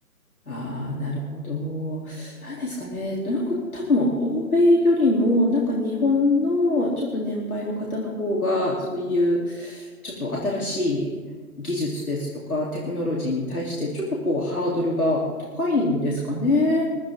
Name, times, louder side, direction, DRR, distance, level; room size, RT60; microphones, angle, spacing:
voice 1, 0.5-11.1 11.6-16.8, left 2 dB, 70° left, -4 dB, 3.8 m, -24 dB
23.5 x 14.5 x 3.9 m, 1.4 s
figure-of-eight pair, 145°, 44 cm